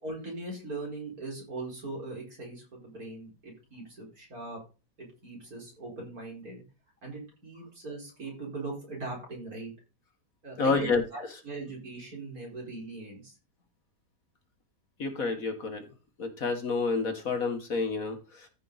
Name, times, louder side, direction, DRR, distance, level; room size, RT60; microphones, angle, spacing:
voice 1, 0.0-4.6 5.0-6.6 7.0-9.7 10.4-13.4, right 2 dB, 60° right, -2 dB, 5.1 m, -40 dB
voice 2, 10.6-11.0 15.0-15.8 16.2-18.2, left 4 dB, 55° left, 6 dB, 1.8 m, -28 dB
14.0 x 5.3 x 4.0 m, 0.31 s
omnidirectional pair, 1.8 m